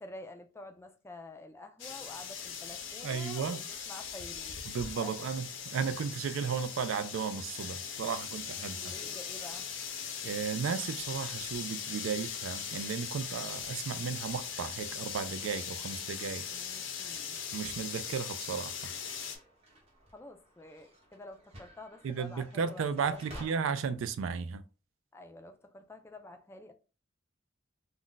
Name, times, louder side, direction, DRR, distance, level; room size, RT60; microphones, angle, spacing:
voice 1, 0.0-4.6 5.0-5.3 8.8-9.7 16.5-17.4 20.1-23.7 25.1-26.7, left 2 dB, 15° left, 0.3 m, -49 dB
sound 1, 1.8-19.4, left 7 dB, 75° left, 0.6 m, -40 dB
voice 2, 3.0-3.6 4.7-8.9 10.2-16.5 17.5-18.9 22.0-24.6, right 6 dB, 85° right, 0.3 m, -34 dB
sound 2, 17.6-23.5, right 1 dB, 35° right, 0.8 m, -54 dB
2.4 x 2.1 x 3.8 m
head